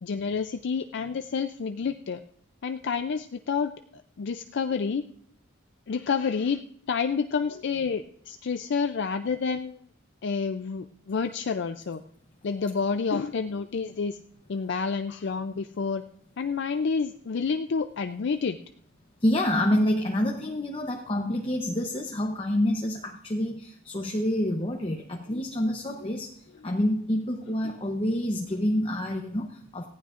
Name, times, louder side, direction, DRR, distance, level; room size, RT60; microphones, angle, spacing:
voice 1, 0.0-2.2 2.6-5.0 5.9-6.6 6.9-9.8 10.2-12.0 12.4-14.2 14.5-16.0 16.4-18.6 25.3-25.4 27.6-27.8, left 5 dB, 55° left, 8 dB, 0.4 m, -29 dB
voice 2, 19.2-26.3 26.6-29.9, left 1 dB, 25° left, 2 dB, 0.8 m, -27 dB
18.5 x 15.0 x 2.5 m, 0.65 s
head